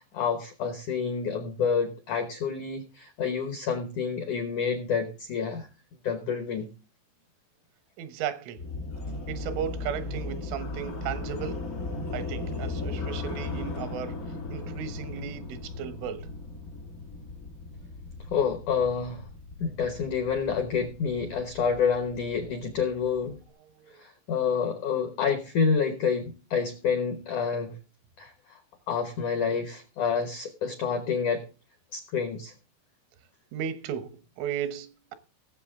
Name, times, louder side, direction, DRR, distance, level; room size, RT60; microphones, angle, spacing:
voice 1, 0.1-5.7 6.0-6.7 18.3-19.3 19.6-23.4 24.0-27.7 28.2-28.6 28.9-31.4 31.9-32.5, left 6 dB, 85° left, 1.7 m, -28 dB
voice 2, 8.0-8.6 9.3-11.7 12.1-14.2 14.5-16.3 23.8-23.9 33.5-35.1, right 9 dB, 85° right, 3.6 m, -35 dB
sound 1, 8.6-23.5, left 2 dB, 60° left, 0.8 m, -37 dB
18.5 x 7.4 x 3.6 m
omnidirectional pair, 5.5 m